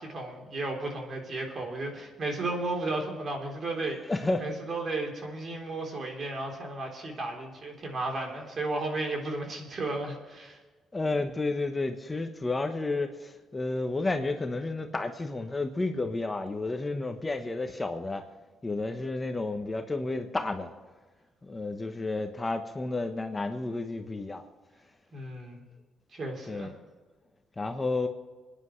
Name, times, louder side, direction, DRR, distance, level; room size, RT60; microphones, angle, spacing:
voice 1, 0.0-4.0 4.4-10.6 25.1-25.6 26.1-26.7, right 2 dB, 45° right, 3.6 m, -34 dB
voice 2, 4.1-4.6 10.9-18.2 18.6-20.7 21.4-24.4 26.5-26.7 27.6-28.1, left 2 dB, 20° left, 1.1 m, -31 dB
27.0 x 10.0 x 3.2 m
cardioid pair, 90°, 0 cm